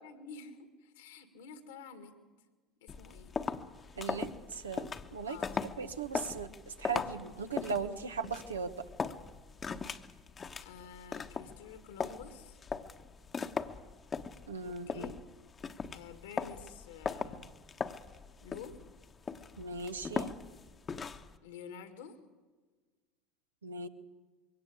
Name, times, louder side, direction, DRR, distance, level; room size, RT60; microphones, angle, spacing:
voice 1, 0.0-2.2 2.8-3.4 5.3-5.6 10.6-12.6 14.7-15.2 15.9-17.5 18.4-18.8 21.4-22.2, left 6 dB, 70° left, 9 dB, 2.1 m, -49 dB
sound 1, 2.9-21.4, left 5 dB, 30° left, 1.1 m, -40 dB
voice 2, 4.0-5.4 5.8-8.7 14.5-15.1 19.6-20.3 23.6-23.9, right 5 dB, 85° right, 7 dB, 1.2 m, -38 dB
22.5 x 17.5 x 8.4 m, 1.4 s
figure-of-eight pair, 70°, 0 cm